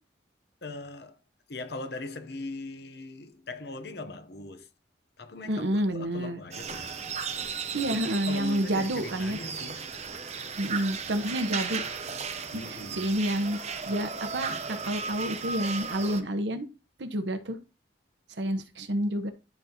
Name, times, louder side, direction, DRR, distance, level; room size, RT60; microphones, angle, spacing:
voice 1, 0.6-1.2 1.5-4.7 5.2-7.1 7.9-10.0 12.5-13.1, left 2 dB, 60° left, 0.8 m, -40 dB
voice 2, 5.5-6.4 7.7-9.4 10.6-11.8 12.7-13.6 13.8-16.7 17.0-17.6 18.4-19.3, right 1 dB, 75° right, 1.0 m, -29 dB
sound 1, 6.5-16.2, right 5 dB, 35° right, 0.9 m, -35 dB
12.0 x 4.1 x 2.9 m
head